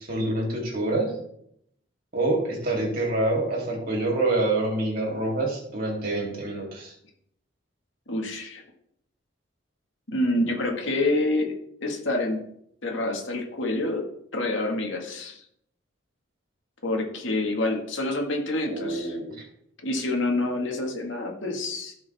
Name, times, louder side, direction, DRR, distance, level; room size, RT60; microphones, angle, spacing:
voice 1, 0.1-1.1 2.1-6.9 18.7-19.4, right 2 dB, 45° right, -1 dB, 3.1 m, -26 dB
voice 2, 8.1-8.6 10.1-11.5 11.8-12.4 12.8-14.0 14.3-15.4 16.8-19.2 19.8-21.9, left 2 dB, 70° left, 2 dB, 1.9 m, -27 dB
15.5 x 5.3 x 3.5 m, 0.71 s
head